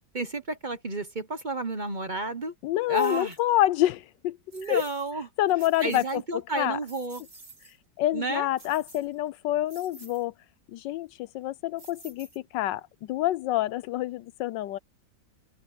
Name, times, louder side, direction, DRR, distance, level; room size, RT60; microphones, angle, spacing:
voice 1, 0.1-2.5 2.9-3.3 4.5-5.3 5.8-7.2 8.1-8.5, right 2 dB, 30° right, 1.2 m, -31 dB
voice 2, 2.6-4.4 4.7-4.8 5.4-6.0 6.6-6.8 8.0-10.3 10.7-12.3 12.5-14.8, left 14 dB, 85° left, 1.3 m, -27 dB
sound 1, 2.9-3.4 4.5-5.1 5.5-6.2 6.6-7.8 8.6-9.3 9.7-10.2 11.8-12.6, right 2 dB, 65° right, 7.1 m, -51 dB
open air
omnidirectional pair, 1.9 m